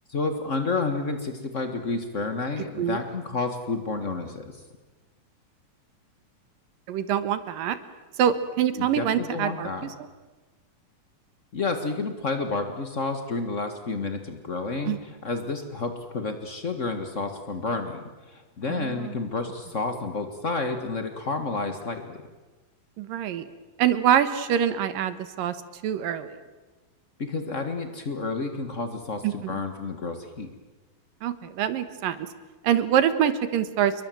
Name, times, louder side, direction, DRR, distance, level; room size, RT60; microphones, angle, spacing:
voice 1, 0.1-4.6 8.7-9.9 11.5-22.2 27.2-30.5, left 3 dB, 55° left, 7 dB, 0.8 m, -30 dB
voice 2, 6.9-7.8 8.2-9.7 14.9-15.0 18.7-19.2 23.0-23.5 23.8-25.6 25.8-26.3 29.2-29.3 31.2-32.3 32.6-33.9, right 9 dB, 75° right, 12 dB, 3.0 m, -25 dB
29.0 x 23.0 x 7.7 m, 1.3 s
omnidirectional pair, 4.1 m